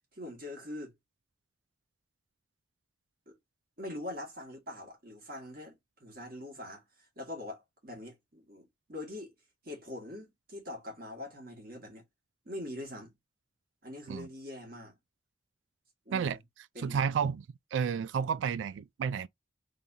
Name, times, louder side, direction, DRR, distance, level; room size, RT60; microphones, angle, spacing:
voice 1, 0.1-0.9 3.3-3.4 3.8-5.7 6.0-9.3 9.6-12.0 12.5-13.1 13.8-15.0 16.1-16.4 16.7-17.2, left 1 dB, 55° right, 2.1 m, -43 dB
voice 2, 16.8-17.4 17.7-19.3, right 7 dB, 85° right, 0.3 m, -31 dB
3.9 x 3.4 x 2.8 m
head